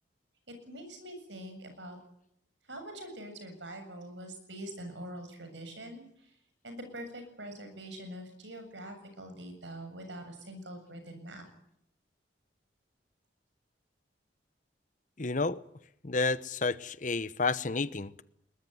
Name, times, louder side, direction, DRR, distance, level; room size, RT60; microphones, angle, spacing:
voice 1, 0.5-2.0 2.7-6.3 6.6-11.4, right 1 dB, 85° right, 7.3 m, -44 dB
voice 2, 15.2-15.6 16.0-18.2, left 3 dB, 45° left, 0.9 m, -30 dB
22.0 x 20.5 x 9.3 m
head